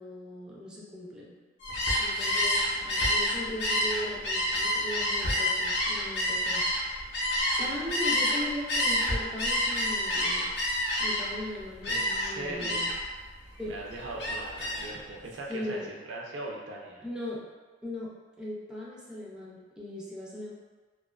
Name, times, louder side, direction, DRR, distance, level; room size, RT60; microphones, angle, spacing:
voice 1, 0.0-1.3 2.0-7.1 7.6-10.5 11.0-12.9 13.6-13.8 15.5-15.9 17.0-17.4 17.8-18.1 18.4-20.5, left 1 dB, 5° right, -6 dB, 0.4 m, -38 dB
Gull seagull, 1.6-8.4 8.7-11.4 11.8-12.3 12.6-13.1 13.5-14.9, left 1 dB, 65° left, 0.6 m, -28 dB
voice 2, 11.9-12.9 13.7-17.1, right 2 dB, 70° right, -2 dB, 0.4 m, -39 dB
2.3 x 2.3 x 2.2 m, 1.4 s
head